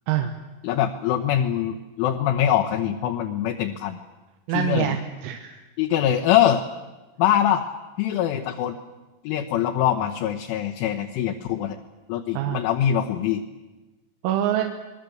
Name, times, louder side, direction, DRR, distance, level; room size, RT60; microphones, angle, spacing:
voice 1, 0.6-4.0 4.6-5.0 5.8-6.6 7.2-7.6 8.0-8.8 9.2-11.8 12.1-13.4, left 10 dB, 75° left, 2 dB, 3.4 m, -23 dB
voice 2, 4.5-5.6 12.4-12.6 14.2-14.6, right 11 dB, 85° right, 4 dB, 4.0 m, -25 dB
27.0 x 20.5 x 7.8 m, 1.1 s
omnidirectional pair, 5.9 m